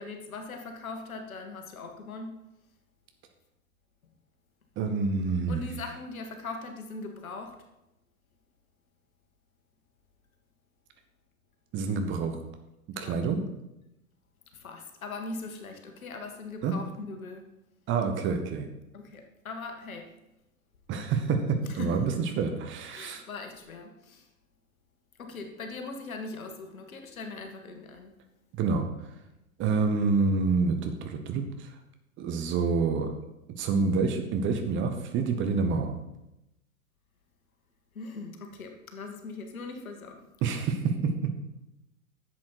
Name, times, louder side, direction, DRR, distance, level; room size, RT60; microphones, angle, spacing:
voice 1, 0.0-2.4 5.5-7.6 13.0-13.2 14.6-17.4 18.9-20.1 21.7-22.2 22.9-24.2 25.2-28.1 38.0-40.2 40.5-40.7, left 3 dB, 70° left, 5 dB, 1.8 m, -40 dB
voice 2, 4.8-5.6 11.7-12.4 13.0-13.5 16.6-16.7 17.9-18.7 20.9-23.2 28.5-28.8 29.6-31.8 32.2-33.1 33.6-36.0 40.4-41.3, right 4 dB, 25° right, 6 dB, 1.2 m, -27 dB
10.5 x 7.6 x 4.6 m, 0.90 s
figure-of-eight pair, 105°, 43 cm